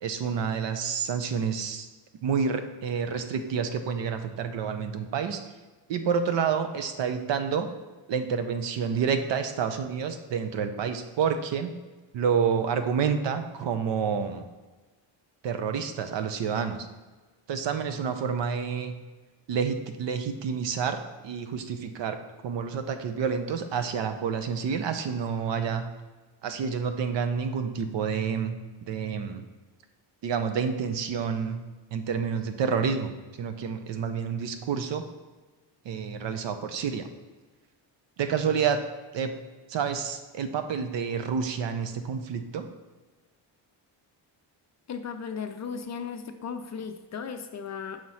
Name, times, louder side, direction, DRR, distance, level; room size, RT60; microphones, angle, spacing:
voice 1, 0.0-1.9 2.2-5.4 5.9-7.7 8.1-11.7 12.1-14.4 15.4-16.9 17.5-19.0 19.5-22.2 22.4-25.9 26.4-28.6 28.9-29.5 30.2-31.6 31.9-35.0 35.8-37.1 38.2-38.8 39.1-39.3 39.7-42.6, right 6 dB, 65° right, 8 dB, 0.7 m, -29 dB
voice 2, 44.9-48.0, left 6 dB, 40° left, 7 dB, 0.4 m, -36 dB
6.4 x 3.0 x 5.5 m, 1.3 s
cardioid pair, 135°, 46 cm